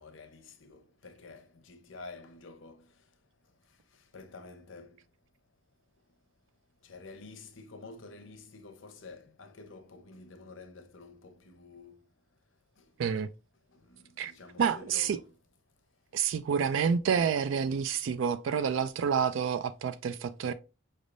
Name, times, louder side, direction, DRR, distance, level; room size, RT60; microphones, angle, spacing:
voice 1, 0.0-2.9 4.1-5.0 6.8-12.0 13.9-15.3, left 3 dB, 70° left, 0.7 m, -49 dB
voice 2, 14.6-15.2 16.1-20.5, right 7 dB, 70° right, 0.3 m, -28 dB
5.2 x 3.3 x 2.5 m
head